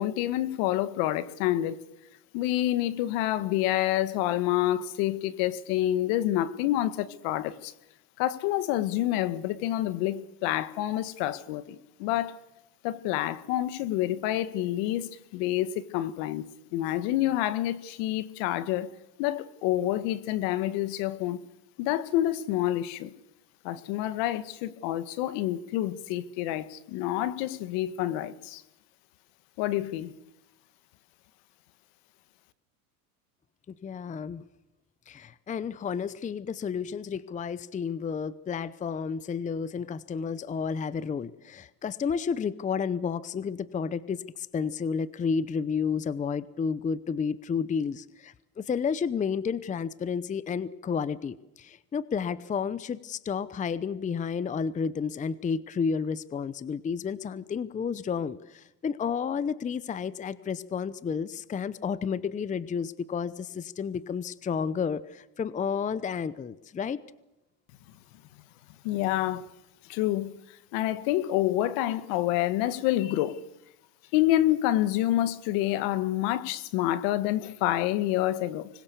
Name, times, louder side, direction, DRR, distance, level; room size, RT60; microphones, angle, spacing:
voice 1, 0.0-1.9 2.3-7.7 8.2-12.4 12.8-16.5 16.7-18.9 19.2-21.4 21.8-23.1 23.6-28.6 29.6-30.1 68.8-69.5 69.9-73.4 74.1-78.7, left 14 dB, 60° left, 1.8 m, -28 dB
voice 2, 33.8-34.4 35.1-67.0, left 6 dB, 15° left, 0.8 m, -31 dB
25.5 x 21.5 x 6.9 m
supercardioid pair, 115°, 46 cm